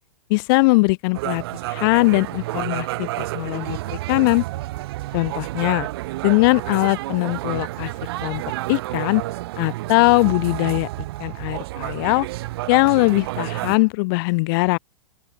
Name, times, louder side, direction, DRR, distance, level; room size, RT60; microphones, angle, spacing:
voice 1, 0.3-1.4 1.7-3.8 4.1-4.4 5.1-5.9 6.2-7.9 8.2-8.4 8.7-9.2 9.6-10.9 11.2-12.3 12.7-14.8, left 27 dB, 40° left, 5.0 m, -20 dB
sound 1, 1.1-13.8, right 18 dB, 45° right, 3.6 m, -30 dB
open air
figure-of-eight pair, 105°, 18 cm